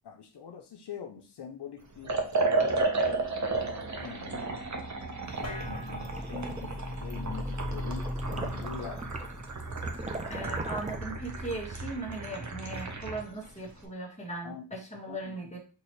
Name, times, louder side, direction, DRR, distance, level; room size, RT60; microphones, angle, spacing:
voice 1, 0.0-2.2 2.5-3.7 4.0-4.6 5.4-9.0 14.4-14.8 15.1-15.6, left 7 dB, 75° left, 4 dB, 0.7 m, -44 dB
Liquid, 2.0-13.3, right 3 dB, 45° right, 1.0 m, -33 dB
sound 1, 5.4-12.2, left 1 dB, 40° left, 1.5 m, -40 dB
sound 2, 5.4-11.0, right 2 dB, 20° right, 0.6 m, -41 dB
voice 2, 10.3-15.6, right 2 dB, 15° left, -1 dB, 1.6 m, -38 dB
6.0 x 2.8 x 3.1 m, 0.35 s
wide cardioid pair, 95°, 41 cm